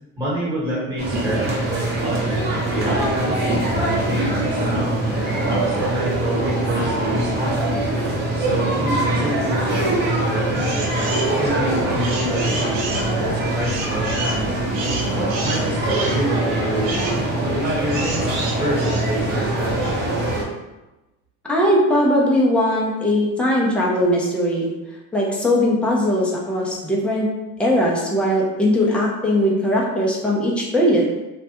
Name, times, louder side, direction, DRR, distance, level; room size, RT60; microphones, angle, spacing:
voice 1, 0.2-3.4 3.7-11.0 11.3-14.6 15.1-18.3 18.6-19.8, right 1 dB, 15° right, -8 dB, 1.0 m, -27 dB
sound 1, 1.0-20.4, right 1 dB, 35° right, 0.7 m, -23 dB
sound 2, 10.5-11.3 11.8-19.9, right 3 dB, 85° right, 0.8 m, -31 dB
voice 2, 21.4-24.7 25.1-27.3 27.6-31.0, equal, 5° left, -4 dB, 0.3 m, -19 dB
3.2 x 2.1 x 2.8 m, 1.0 s
cardioid pair, 165°, 30 cm